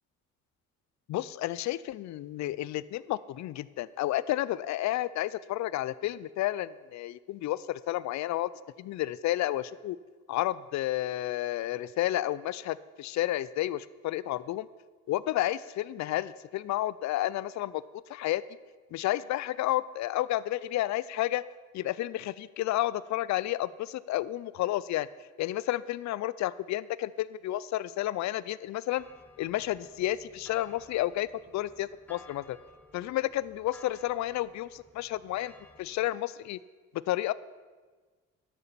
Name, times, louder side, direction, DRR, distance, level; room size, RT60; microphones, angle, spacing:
voice 1, 1.1-8.5 8.8-10.0 10.3-14.7 15.1-17.8 18.1-18.4 18.9-21.4 21.7-25.1 25.4-29.0 29.4-31.3 31.5-32.6 32.9-35.5 35.8-36.6 37.1-37.3, left 14 dB, 65° left, 18 dB, 0.5 m, -31 dB
sound 1, 29.0-36.1, left 3 dB, 5° left, 1.1 m, -56 dB
11.0 x 6.9 x 7.4 m, 1.4 s
cardioid pair, 90°, 30 cm